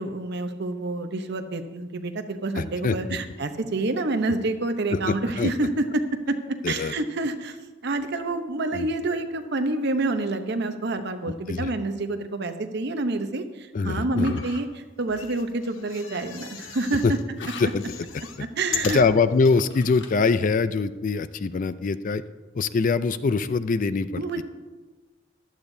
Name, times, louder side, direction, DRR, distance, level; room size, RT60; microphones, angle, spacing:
voice 1, 0.0-7.6 7.8-17.2 18.6-19.0 24.2-24.4, right 2 dB, 60° right, 8 dB, 0.8 m, -28 dB
voice 2, 2.6-3.2 4.9-5.5 6.6-6.9 8.7-8.9 11.5-11.7 13.7-14.4 17.0-17.1 17.6-17.8 18.4-18.5 18.8-22.2 22.5-24.4, left 4 dB, 40° left, 13 dB, 0.4 m, -23 dB
sound 1, 14.2-14.6 17.4-18.0 19.4-20.3, left 4 dB, 65° left, 1.2 m, -43 dB
sound 2, 15.0-17.2 17.6-19.6 20.1-20.2 20.4-20.5, left 8 dB, 85° left, 0.9 m, -37 dB
15.5 x 11.5 x 2.7 m, 1.3 s
head